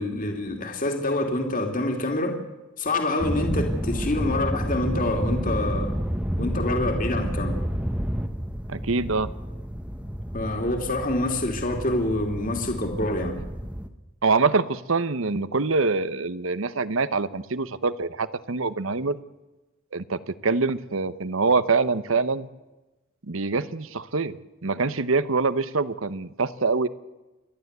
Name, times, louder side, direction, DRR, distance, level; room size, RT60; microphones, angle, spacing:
voice 1, 0.0-2.4 2.8-6.0 6.4-7.6 10.3-13.4, left 1 dB, 40° left, 3 dB, 2.7 m, -26 dB
sound 1, 3.2-13.9, equal, 5° right, 1.1 m, -30 dB
voice 2, 8.7-9.3 14.2-19.2 19.9-22.5 23.3-24.4 24.6-26.9, right 4 dB, 70° right, 15 dB, 0.9 m, -25 dB
29.0 x 12.0 x 8.1 m, 1.1 s
head